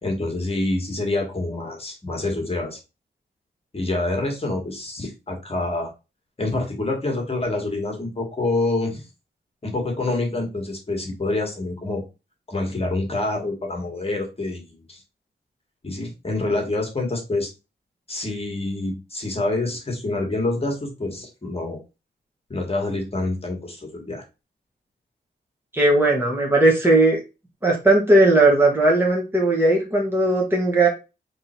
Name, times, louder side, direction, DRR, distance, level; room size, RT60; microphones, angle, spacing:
voice 1, 0.0-2.8 3.7-5.9 6.4-9.0 9.6-12.0 12.5-15.0 15.8-17.5 18.1-21.8 22.5-24.2, left 2 dB, 35° left, 0 dB, 1.5 m, -26 dB
voice 2, 25.7-27.2 27.6-30.9, right 2 dB, 10° right, -2 dB, 1.4 m, -17 dB
3.7 x 3.2 x 4.3 m, 0.28 s
wide cardioid pair, 100°, 18 cm